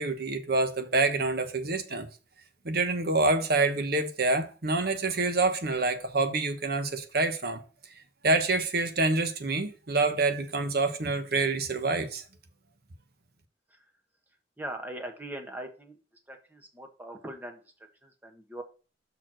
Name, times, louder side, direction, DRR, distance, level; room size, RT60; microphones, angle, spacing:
voice 1, 0.0-2.1 2.6-7.6 8.2-12.2, right 3 dB, 60° right, 1.1 m, -27 dB
voice 2, 14.6-16.0 16.3-18.6, right 1 dB, 10° right, 1.3 m, -41 dB
6.0 x 4.5 x 6.2 m
head